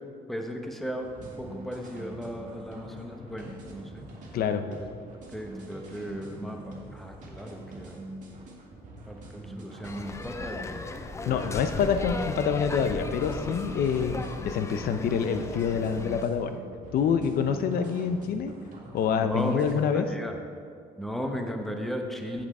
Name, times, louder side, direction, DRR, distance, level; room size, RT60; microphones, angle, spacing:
voice 1, 0.3-4.0 4.7-4.9 5.3-8.0 9.1-11.0 11.2-11.5 19.2-19.6 20.0-20.4 21.0-22.5, equal, ahead, 3 dB, 0.9 m, -36 dB
sound 1, 1.0-19.8, right 1 dB, 45° right, 1.9 m, -44 dB
voice 2, 4.3-4.7 11.2-14.2 14.4-16.6 16.9-18.5 18.9-20.1, left 7 dB, 65° left, 9 dB, 0.7 m, -26 dB
sound 2, 9.8-16.2, left 3 dB, 15° left, 0.5 m, -37 dB
8.3 x 7.7 x 4.3 m, 2.2 s
cardioid pair, 110°, 17 cm